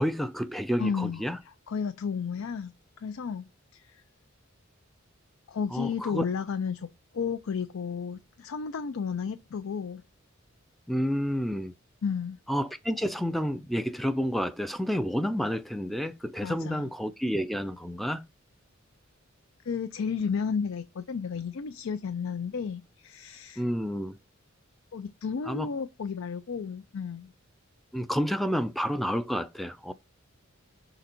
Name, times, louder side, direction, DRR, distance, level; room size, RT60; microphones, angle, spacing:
voice 1, 0.0-1.4 5.7-6.3 10.9-11.7 12.5-18.2 23.6-24.2 25.5-25.7 27.9-29.9, equal, ahead, 0.3 m, -30 dB
voice 2, 0.8-2.7 3.0-4.0 5.5-6.9 7.1-10.0 12.0-12.4 16.4-16.9 19.6-23.6 24.9-27.3, left 6 dB, 75° left, 0.5 m, -33 dB
6.0 x 3.9 x 4.2 m
head